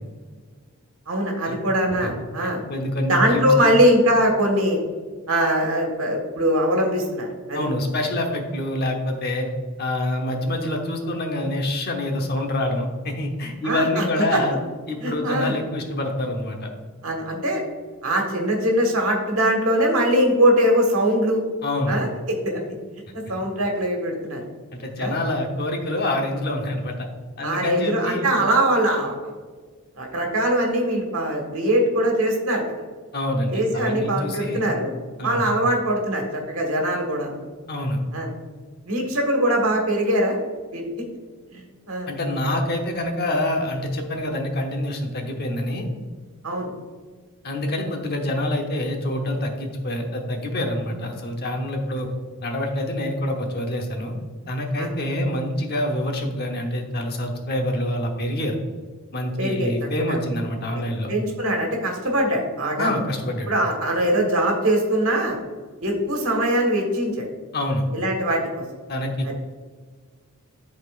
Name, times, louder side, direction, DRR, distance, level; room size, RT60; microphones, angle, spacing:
voice 1, 1.1-2.6 3.1-4.8 5.3-7.7 13.6-14.4 15.0-15.5 17.0-17.6 18.0-21.4 21.9-22.7 23.1-24.4 25.0-25.1 27.4-29.3 30.0-32.6 33.5-34.9 35.2-37.4 38.1-38.3 38.8-40.4 40.7-40.8 41.5-41.6 41.9-42.1 46.4-46.7 54.8-54.9 59.4-59.7 60.1-60.2 60.7-60.8 61.1-62.9 63.5-65.4 65.8-67.3 67.9-68.4 69.2-69.3, right 1 dB, 70° right, 1 dB, 1.6 m, -22 dB
voice 2, 2.7-3.7 7.5-9.5 9.8-14.6 14.9-16.7 21.6-22.0 24.7-27.1 27.4-28.4 33.1-34.7 35.2-35.5 37.7-38.0 42.1-45.9 47.4-52.1 52.4-54.1 54.5-58.6 59.1-61.1 62.8-63.5 67.5-67.8 68.9-69.3, left 1 dB, 45° left, 2 dB, 1.0 m, -26 dB
11.5 x 4.3 x 2.5 m, 1.5 s
head